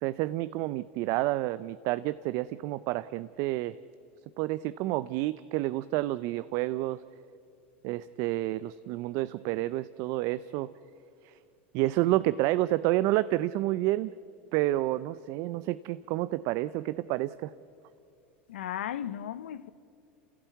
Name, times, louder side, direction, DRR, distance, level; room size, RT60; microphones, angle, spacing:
voice 1, 0.0-3.8 4.4-7.0 7.8-10.7 11.2-11.3 11.7-14.1 14.5-17.5, right 17 dB, 60° right, 0.5 m, -29 dB
voice 2, 18.5-19.7, left 10 dB, 85° left, 0.8 m, -35 dB
27.5 x 16.0 x 8.3 m
hypercardioid pair, 100°, 6 cm